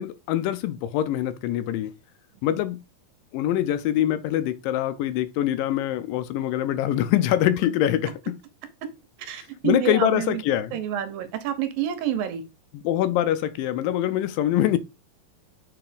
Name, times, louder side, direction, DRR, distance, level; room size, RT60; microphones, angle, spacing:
voice 1, 0.0-1.9 2.4-2.8 3.3-8.4 9.6-10.8 12.7-14.8, left 12 dB, 80° left, 2.1 m, -24 dB
voice 2, 9.2-10.4 10.7-12.4, right 11 dB, 80° right, 2.6 m, -28 dB
7.0 x 3.2 x 5.1 m
omnidirectional pair, 4.1 m